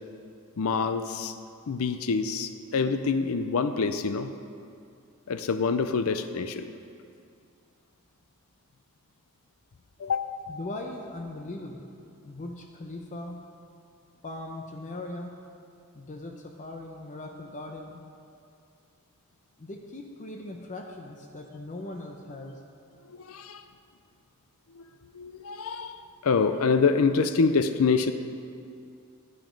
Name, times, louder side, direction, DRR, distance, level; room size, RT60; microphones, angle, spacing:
voice 1, 0.6-1.3 1.7-4.3 5.3-6.7 10.0-10.3 23.1-23.6 24.7-24.8 25.1-28.1, left 4 dB, 70° left, 10 dB, 0.5 m, -26 dB
voice 2, 10.5-11.9 12.2-13.4 14.2-15.4 15.9-18.0 19.6-22.6, left 2 dB, 35° left, 2 dB, 0.7 m, -39 dB
11.5 x 9.1 x 5.2 m, 2.4 s
head